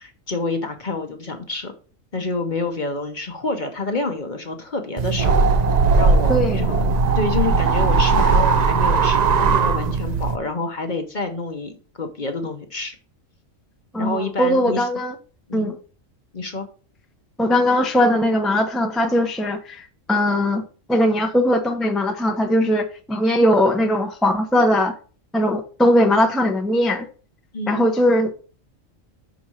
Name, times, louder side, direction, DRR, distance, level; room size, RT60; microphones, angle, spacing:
voice 1, 0.0-1.7 2.1-5.3 6.0-12.9 14.0-14.9 15.5-15.7 16.3-16.6 27.5-27.9, left 3 dB, 40° left, 1.0 m, -28 dB
sound 1, 5.0-10.4, right 4 dB, 50° right, 0.5 m, -18 dB
voice 2, 6.3-6.7 13.9-15.1 15.5-15.8 17.4-20.6 20.9-24.9 25.3-27.1 27.7-28.3, left 1 dB, ahead, 0.6 m, -19 dB
6.3 x 4.3 x 6.2 m
omnidirectional pair, 1.4 m